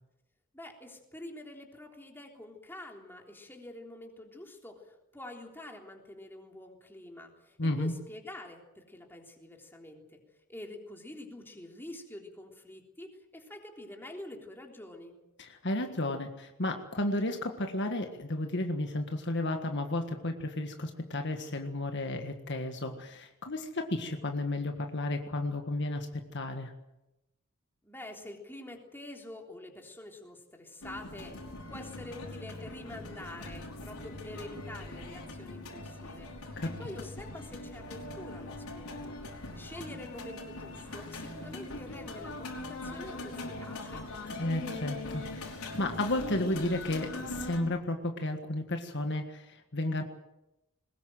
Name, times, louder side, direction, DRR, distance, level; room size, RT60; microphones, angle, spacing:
voice 1, 0.5-10.2 10.5-15.2 27.8-31.4 31.7-39.2 39.6-44.1, left 1 dB, 10° left, 1 dB, 3.5 m, -47 dB
voice 2, 7.6-7.9 15.4-26.1 26.3-26.7 36.6-36.7 44.4-50.0, left 1 dB, 55° left, 5 dB, 1.7 m, -33 dB
sound 1, 30.8-47.6, left 2 dB, 80° left, 5.3 m, -41 dB
22.0 x 20.5 x 7.8 m, 0.95 s
head